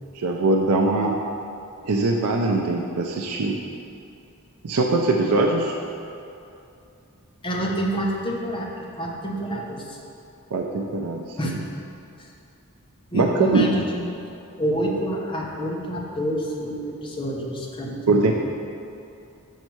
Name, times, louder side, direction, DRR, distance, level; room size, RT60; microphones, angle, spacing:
voice 1, 0.1-1.1 1.8-3.5 4.6-5.8 10.5-11.6 13.1-13.7 18.1-18.3, right 3 dB, 85° right, 1 dB, 0.5 m, -22 dB
voice 2, 7.4-8.7 9.0-10.0 11.4-11.6 13.1-14.0 14.6-18.3, right 1 dB, 25° left, -2 dB, 0.9 m, -27 dB
6.5 x 5.4 x 4.6 m, 2.7 s
head